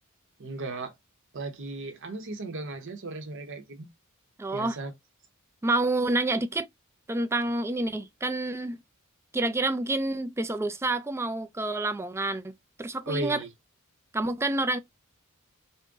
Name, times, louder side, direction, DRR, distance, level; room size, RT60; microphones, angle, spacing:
voice 1, 0.4-0.9 1.3-3.9 4.5-4.9 13.1-13.5, right 2 dB, 60° right, 0.8 m, -35 dB
voice 2, 4.4-4.8 5.6-6.7 7.1-8.8 9.3-12.4 12.8-13.4 14.1-14.8, right 2 dB, 10° right, 0.3 m, -28 dB
3.8 x 2.1 x 3.6 m
head